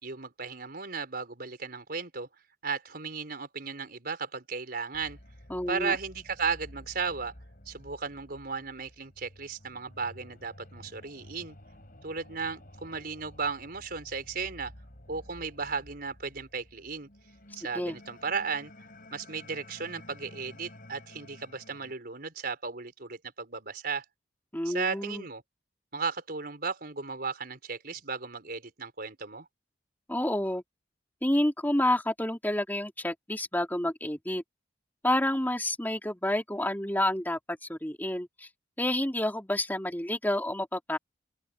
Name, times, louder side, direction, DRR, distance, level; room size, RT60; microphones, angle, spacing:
voice 1, 0.0-2.3 2.6-5.2 5.7-7.3 7.7-11.6 12.0-14.7 15.1-17.1 17.5-18.7 19.1-24.0 24.6-25.4 25.9-29.5, right 5 dB, 55° right, 4.7 m, -35 dB
sound 1, 4.9-21.9, left 1 dB, 50° left, 5.5 m, -52 dB
voice 2, 5.5-6.0 17.7-18.0 24.5-25.3 30.1-30.6 31.2-34.4 35.0-38.5 38.8-41.0, left 1 dB, 10° left, 3.0 m, -29 dB
open air
head